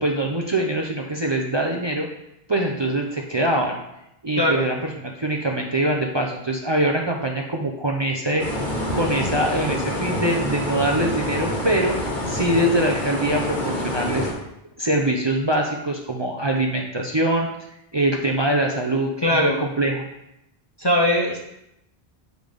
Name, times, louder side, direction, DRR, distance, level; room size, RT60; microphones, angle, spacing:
voice 1, 0.0-2.1 2.5-3.7 4.2-8.4 8.9-12.0 12.3-14.3 14.8-17.5 17.9-20.1, right 1 dB, 30° right, 0 dB, 0.6 m, -23 dB
sound 1, 8.4-14.3, left 1 dB, 50° left, 1.5 m, -27 dB
voice 2, 19.2-19.6 20.8-21.4, left 1 dB, 25° left, -1 dB, 0.6 m, -20 dB
7.7 x 3.4 x 5.2 m, 0.83 s
omnidirectional pair, 1.1 m